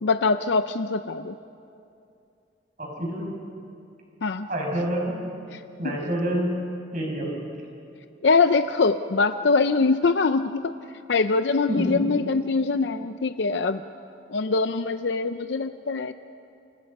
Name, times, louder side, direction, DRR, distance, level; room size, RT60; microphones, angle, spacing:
voice 1, 0.0-1.4 4.2-4.5 5.5-6.0 8.2-10.7 11.1-13.8 14.3-16.1, left 4 dB, 75° left, 10 dB, 0.6 m, -23 dB
voice 2, 2.8-3.4 4.5-5.1 5.8-6.5 6.9-7.3 11.7-12.0, equal, 45° right, 0 dB, 6.0 m, -27 dB
29.5 x 26.5 x 5.4 m, 2.6 s
head